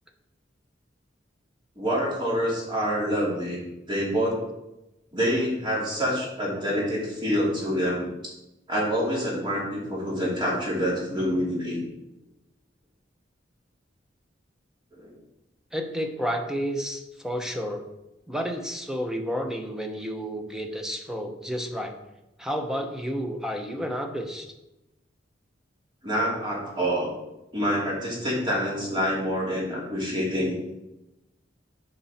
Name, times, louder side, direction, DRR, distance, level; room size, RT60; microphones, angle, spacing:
voice 1, 1.8-4.4 5.1-8.3 8.7-11.8 15.0-15.1 26.0-27.1 27.5-30.7, equal, 25° right, -5 dB, 3.1 m, -27 dB
voice 2, 15.7-17.9 18.3-22.0 22.4-24.5, equal, 5° right, 4 dB, 0.9 m, -31 dB
9.2 x 5.4 x 4.4 m, 0.95 s
head